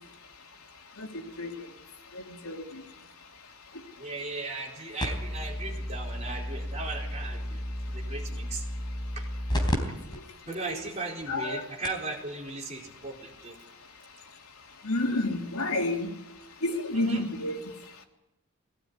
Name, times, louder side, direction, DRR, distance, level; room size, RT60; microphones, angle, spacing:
voice 1, 4.0-7.6 7.9-8.6 9.2-9.3 10.5-13.6 16.9-17.2, right 2 dB, 30° right, 4.5 m, -37 dB
sound 1, 5.0-9.8 10.1-10.2 10.9-11.0 11.5-11.6 11.8-12.1 13.3-13.4, equal, 20° left, 3.8 m, -32 dB
voice 2, 11.3-11.6 14.8-16.1 16.6-17.6, left 2 dB, 90° left, 3.2 m, -29 dB
22.5 x 18.0 x 9.8 m
head